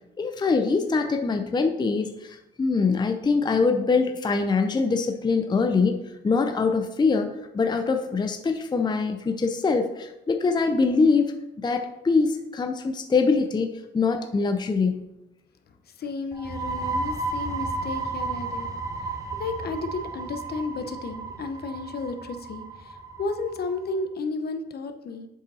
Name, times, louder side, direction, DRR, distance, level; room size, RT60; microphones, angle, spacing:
voice 1, 0.2-11.4 11.6-15.1, left 4 dB, 20° left, 6 dB, 0.5 m, -23 dB
voice 2, 16.0-18.7 19.0-25.3, left 3 dB, 50° left, 7 dB, 0.8 m, -33 dB
sound 1, 16.3-23.8, right 3 dB, 15° right, 1.0 m, -33 dB
7.7 x 5.1 x 4.1 m, 0.92 s
cardioid pair, 90°, 20 cm